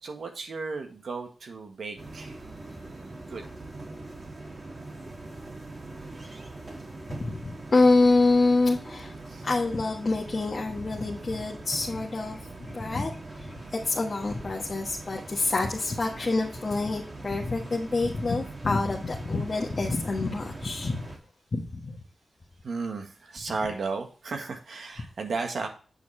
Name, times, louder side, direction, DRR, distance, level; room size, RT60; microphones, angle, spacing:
voice 1, 0.0-2.4 3.3-3.4 9.3-9.5 22.6-25.7, right 4 dB, 70° right, 4 dB, 1.5 m, -34 dB
sound 1, 2.0-21.2, right 2 dB, 35° right, 2.2 m, -42 dB
voice 2, 7.1-9.1 9.4-21.0 21.5-21.9, left 3 dB, 40° left, -1 dB, 1.4 m, -26 dB
8.3 x 6.9 x 3.2 m, 0.38 s
wide cardioid pair, 115°, 0 cm